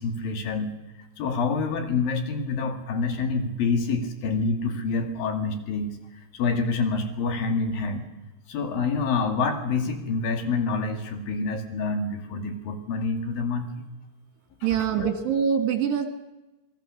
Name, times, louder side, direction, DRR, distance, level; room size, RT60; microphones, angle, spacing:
voice 1, 0.0-5.9 6.3-8.1 8.5-13.7 14.6-15.1, left 4 dB, 55° left, 6 dB, 3.3 m, -27 dB
voice 2, 14.6-16.1, right 8 dB, 65° right, 6 dB, 3.5 m, -24 dB
27.0 x 20.0 x 6.6 m, 1.0 s
omnidirectional pair, 5.9 m